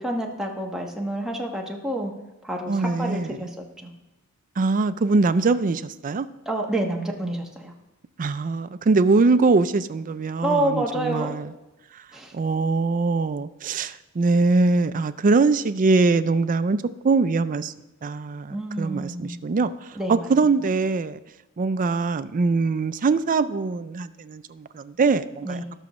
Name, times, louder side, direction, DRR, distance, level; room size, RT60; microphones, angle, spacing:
voice 1, 0.0-2.1 2.4-3.5 3.8-3.9 6.5-7.7 10.4-11.4 12.1-12.3 18.5-19.4 19.9-20.3 25.4-25.7, right 1 dB, ahead, -1 dB, 1.2 m, -28 dB
voice 2, 2.7-3.4 4.6-6.3 8.2-11.5 12.3-17.7 18.0-21.2 21.6-25.6, right 3 dB, 35° right, 12 dB, 0.4 m, -22 dB
18.5 x 6.2 x 3.1 m, 1.0 s
head